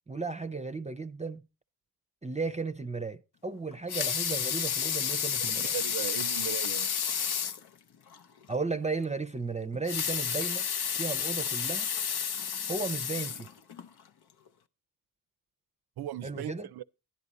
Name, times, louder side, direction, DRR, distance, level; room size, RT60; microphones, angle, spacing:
voice 1, 0.1-1.4 2.2-5.8 8.5-10.7 10.9-11.9 12.7-13.5 16.2-16.7, right 4 dB, 20° right, 0.5 m, -35 dB
Water tap faucet / Sink (filling or washing) / Liquid, 3.7-7.7 8.1-8.2 8.5-8.6 9.7-13.9 14.5-14.6, left 7 dB, 85° left, 0.7 m, -31 dB
voice 2, 5.5-6.9 16.0-16.8, right 11 dB, 80° right, 0.5 m, -38 dB
11.0 x 10.5 x 4.0 m
cardioid pair, 65°, 38 cm